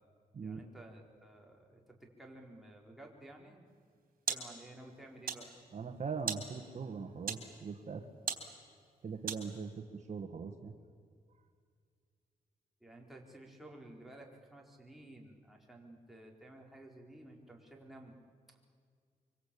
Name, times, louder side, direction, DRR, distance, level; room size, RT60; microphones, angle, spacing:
voice 1, 0.4-3.6 4.3-5.5 12.8-18.2, right 1 dB, ahead, -1 dB, 4.6 m, -54 dB
sound 1, 3.7-9.8, right 6 dB, 65° right, 3.5 m, -43 dB
voice 2, 5.7-8.1 9.0-10.7, right 5 dB, 50° right, 5 dB, 1.8 m, -41 dB
25.0 x 24.5 x 8.7 m, 2.1 s
cardioid pair, 95°, 15 cm